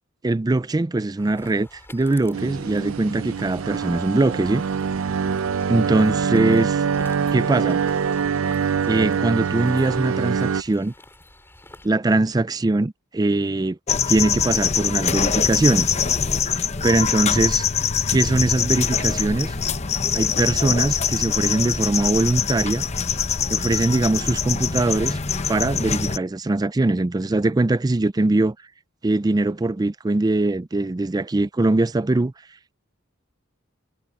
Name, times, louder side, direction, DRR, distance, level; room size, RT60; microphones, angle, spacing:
voice 1, 0.2-4.6 5.7-6.8 7.3-7.8 8.9-10.9 11.8-13.8 14.1-15.9 16.8-17.6 18.1-19.6 20.1-22.8 23.5-25.2 25.5-28.6 29.0-32.3, right 2 dB, 20° right, 0.4 m, -21 dB
sound 1, 1.2-11.9, left 1 dB, 10° left, 7.2 m, -48 dB
sound 2, 2.3-10.6, right 6 dB, 85° right, 0.4 m, -24 dB
sound 3, 13.9-26.2, left 7 dB, 35° left, 0.9 m, -23 dB
head